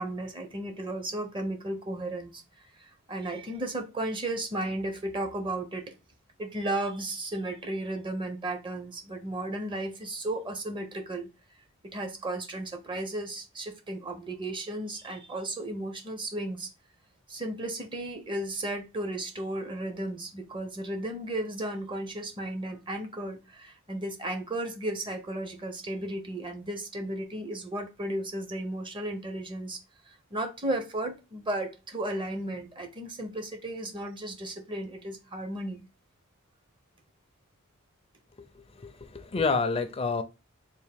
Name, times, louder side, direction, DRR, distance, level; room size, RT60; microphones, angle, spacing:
voice 1, 0.0-2.4 2.8-5.9 6.4-11.3 11.8-16.7 17.3-29.8 30.1-35.8, right 1 dB, 25° right, 0.7 m, -34 dB
voice 2, 38.5-40.2, left 4 dB, 25° left, 0.4 m, -29 dB
3.6 x 2.5 x 3.4 m
head